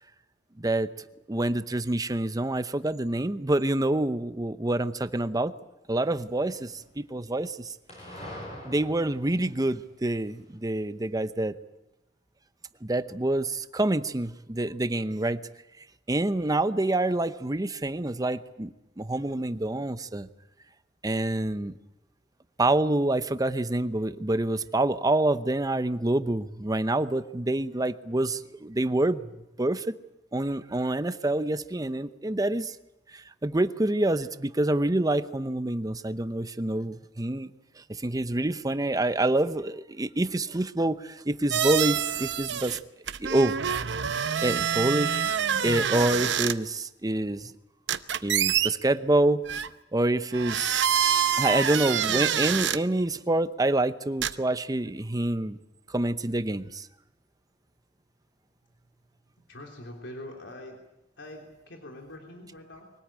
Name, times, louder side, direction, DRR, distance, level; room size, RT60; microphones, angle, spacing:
voice 1, 0.6-0.9 1.3-5.5 5.9-7.7 8.7-11.5 12.8-15.4 16.1-20.3 21.0-21.7 22.6-29.3 29.6-30.0 30.3-32.8 33.1-37.5 37.8-42.8 43.2-43.6 44.4-45.3 45.6-47.5 48.2-49.4 49.9-51.0 51.4-55.6 55.9-56.9, right 1 dB, 20° right, 12 dB, 0.8 m, -27 dB
sound 1, 6.1-7.0 7.9-10.3, left 1 dB, 35° left, 7.8 m, -44 dB
sound 2, 41.5-42.8 43.1-46.5 47.9-48.7 49.5-49.7 50.3-52.8 54.2-54.3, right 8 dB, 75° right, 0.8 m, -26 dB
voice 2, 59.5-60.8 61.2-62.9, left 1 dB, 85° left, 1 dB, 3.4 m, -43 dB
23.5 x 18.0 x 8.8 m, 0.93 s
head